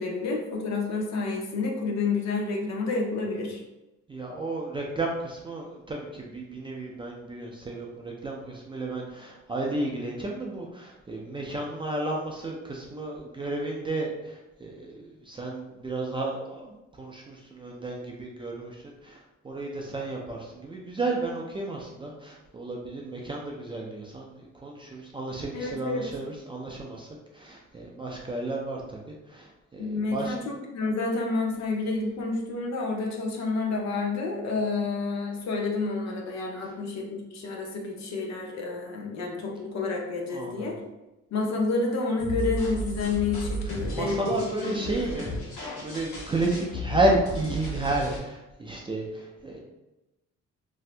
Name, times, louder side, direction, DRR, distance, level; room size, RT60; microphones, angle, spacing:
voice 1, 0.0-3.6 25.5-26.0 29.8-40.7 41.3-44.7, left 3 dB, 65° left, 0 dB, 0.7 m, -29 dB
voice 2, 4.1-30.3 36.6-36.8 40.3-40.8 43.6-45.4 45.8-49.6, right 2 dB, 20° right, -2 dB, 0.3 m, -32 dB
sound 1, 42.2-48.2, equal, 80° left, 1.1 m, -34 dB
2.7 x 2.4 x 3.2 m, 0.98 s
cardioid pair, 155°, 30 cm